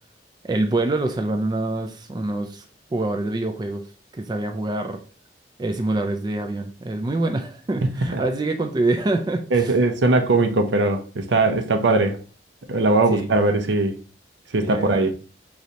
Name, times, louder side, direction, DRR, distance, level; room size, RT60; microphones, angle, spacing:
voice 1, 0.4-2.6 2.9-3.8 4.1-5.0 5.6-9.7 13.1-13.3 14.6-15.1, right 2 dB, 25° right, 0.3 m, -25 dB
voice 2, 9.5-12.2 12.7-14.0 14.5-15.1, right 2 dB, 75° right, 0.6 m, -20 dB
5.0 x 3.1 x 2.7 m
head